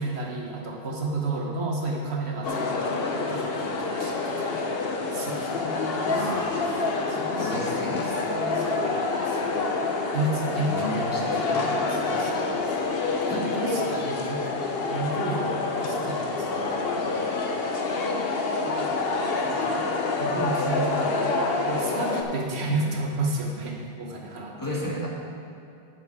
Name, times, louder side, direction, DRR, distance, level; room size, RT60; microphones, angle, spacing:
voice 1, 0.0-4.5 5.1-6.6 7.1-7.8 8.2-9.8 10.1-11.0 12.0-12.6 13.1-14.5 14.9-17.3 18.6-19.1 19.4-19.9 20.2-21.2 21.7-24.8, right 2 dB, 85° right, 0 dB, 1.4 m, -32 dB
sound 1, 2.4-22.2, left 3 dB, 65° left, 1.0 m, -27 dB
voice 2, 5.5-6.9 7.1-9.2 10.6-12.0 13.2-13.5 24.6-25.1, left 1 dB, 20° left, -5 dB, 1.5 m, -35 dB
9.5 x 7.0 x 4.8 m, 2.7 s
omnidirectional pair, 1.1 m